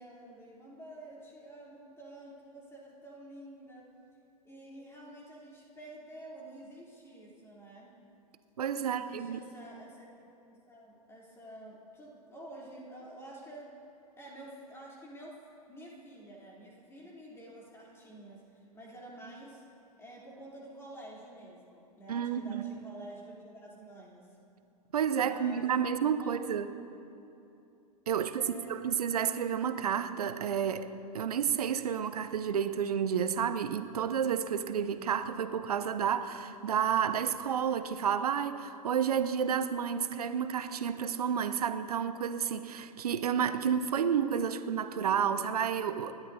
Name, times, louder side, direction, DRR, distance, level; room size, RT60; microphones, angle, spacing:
voice 1, 0.0-3.8 4.4-8.0 8.8-10.1 10.5-13.8 14.2-15.4 15.7-19.6 20.0-24.3 25.2-25.7 26.2-26.3 28.2-28.7, right 1 dB, 10° left, -4 dB, 3.2 m, -49 dB
voice 2, 8.6-9.4 22.1-22.6 24.9-26.7 28.1-46.1, right 8 dB, 70° right, 11 dB, 0.7 m, -30 dB
29.5 x 12.0 x 2.7 m, 2.7 s
figure-of-eight pair, 95°, 20 cm